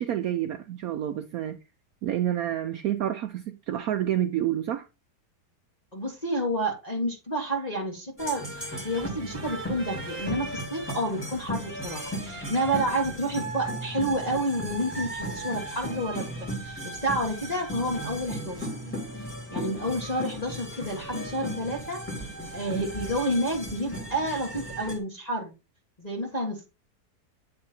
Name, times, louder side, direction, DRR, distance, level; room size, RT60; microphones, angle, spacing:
voice 1, 0.0-1.6 2.0-4.9, right 11 dB, 70° right, 1.0 m, -28 dB
voice 2, 5.9-8.4 8.8-18.7 19.5-22.0 22.5-25.5 26.0-26.7, right 1 dB, 25° left, 1.5 m, -29 dB
sound 1, 8.2-25.0, right 1 dB, 5° left, 2.2 m, -36 dB
8.8 x 3.5 x 4.3 m
omnidirectional pair, 1.7 m